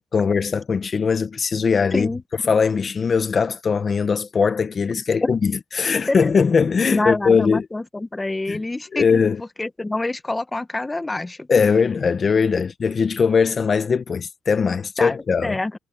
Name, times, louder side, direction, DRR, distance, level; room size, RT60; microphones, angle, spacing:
voice 1, 0.0-2.1 2.4-7.6 8.5-8.6 8.9-9.4 11.5-15.6, left 5 dB, 40° left, 1.0 m, -20 dB
voice 2, 1.9-2.2 5.2-5.3 5.9-6.3 6.9-9.2 9.6-11.5 15.0-15.2 15.4-15.8, left 2 dB, 15° left, 1.2 m, -26 dB
cardioid pair, 90°, 0 cm